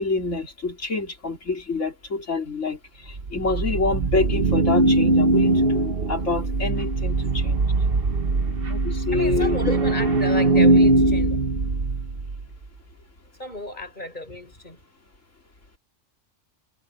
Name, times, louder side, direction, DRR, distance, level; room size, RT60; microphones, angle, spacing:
voice 1, 0.0-7.6 8.7-9.6, left 3 dB, 85° left, 3.9 m, -27 dB
sound 1, 3.1-12.4, right 2 dB, 50° right, 1.4 m, -21 dB
voice 2, 9.1-11.4 13.4-14.8, left 1 dB, 40° left, 7.8 m, -33 dB
omnidirectional pair, 1.2 m